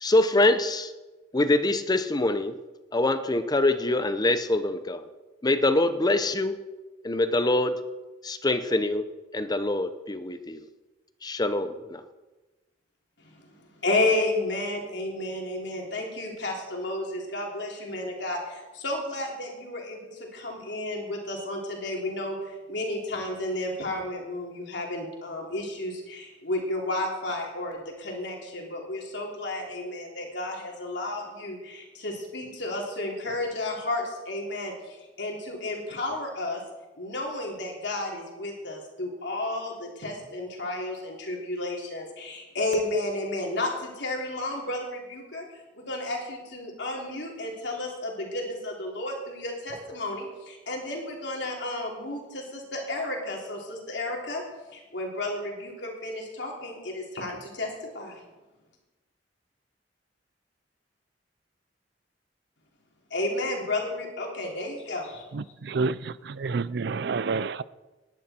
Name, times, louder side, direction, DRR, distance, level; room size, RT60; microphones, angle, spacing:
voice 1, 0.0-0.9 1.3-2.5 2.9-5.0 5.4-6.6 7.0-7.8 8.2-9.1 9.3-10.6 11.2-12.0, left 2 dB, 20° left, 11 dB, 0.7 m, -24 dB
voice 2, 13.2-22.4 22.7-36.6 37.0-45.4 45.8-54.4 54.7-57.7 57.9-58.2 63.1-65.2, left 2 dB, 70° left, 0 dB, 3.4 m, -32 dB
voice 3, 65.7-66.0 66.4-67.6, right 4 dB, 65° right, 18 dB, 0.5 m, -27 dB
19.0 x 11.0 x 4.4 m, 1.2 s
head